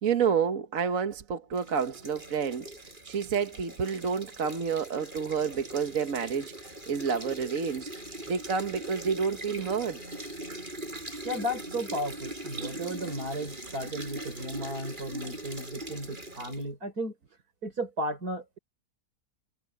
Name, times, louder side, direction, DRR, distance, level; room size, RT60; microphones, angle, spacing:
voice 1, 0.0-7.9 8.3-10.0, right 6 dB, 65° right, 1.6 m, -29 dB
sound 1, 1.5-16.7, right 1 dB, 35° right, 5.0 m, -41 dB
voice 2, 11.2-17.1 17.6-18.6, equal, 90° right, 5.5 m, -34 dB
omnidirectional pair, 1.6 m